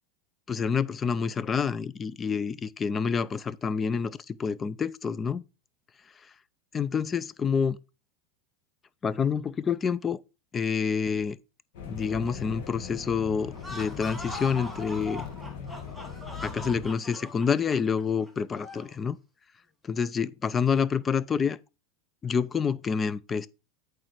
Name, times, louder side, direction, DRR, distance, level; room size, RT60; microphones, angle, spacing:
voice 1, 0.5-5.4 6.7-7.8 9.0-10.2 10.5-11.4 11.9-15.3 16.4-19.2 19.8-21.6 22.2-23.5, left 6 dB, 25° left, 0.4 m, -28 dB
sound 1, 11.7-16.9, left 6 dB, 65° left, 1.5 m, -40 dB
sound 2, 13.5-19.0, left 1 dB, 5° left, 2.6 m, -41 dB
8.6 x 3.2 x 4.8 m
hypercardioid pair, 90°, 0 cm